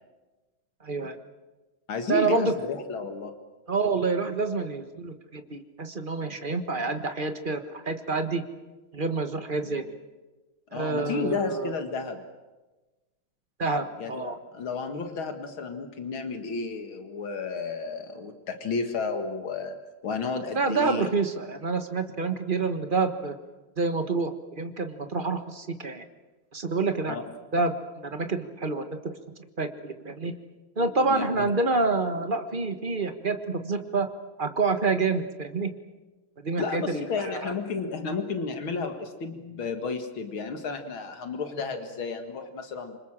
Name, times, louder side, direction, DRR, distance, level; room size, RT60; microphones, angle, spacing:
voice 1, 0.8-1.2 2.1-2.5 3.7-8.4 8.9-9.8 10.7-11.7 13.6-14.4 20.5-23.4 23.8-26.0 26.5-27.2 27.5-27.7 28.0-29.2 29.6-30.3 30.8-34.1 34.4-35.7 36.4-37.5, right 3 dB, 30° right, 8 dB, 1.4 m, -28 dB
voice 2, 1.9-3.3 10.7-12.2 14.0-19.8 20.0-21.1 27.1-27.2 31.1-31.5 36.6-43.0, left 4 dB, 80° left, 6 dB, 2.6 m, -32 dB
27.0 x 25.0 x 7.5 m, 1.2 s
omnidirectional pair, 2.2 m